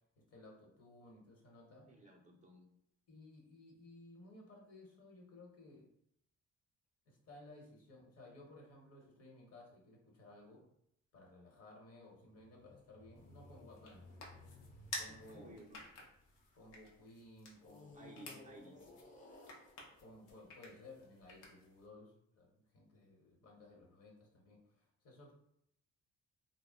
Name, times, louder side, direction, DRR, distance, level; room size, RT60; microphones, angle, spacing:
voice 1, 0.2-1.9 3.1-5.9 7.1-10.6 11.1-14.2 15.0-15.5 16.5-18.4 18.7-19.0 20.0-25.3, left 2 dB, 55° left, -1 dB, 1.0 m, -58 dB
voice 2, 1.9-2.7 15.1-15.8 17.9-18.8, right 2 dB, 25° right, -1 dB, 0.4 m, -57 dB
sound 1, 12.1-16.8 17.6-21.0, left 2 dB, 25° left, 0.5 m, -59 dB
sound 2, 13.2-21.9, left 2 dB, 80° left, 0.7 m, -53 dB
2.1 x 2.0 x 3.5 m, 0.74 s
cardioid pair, 90°, 30 cm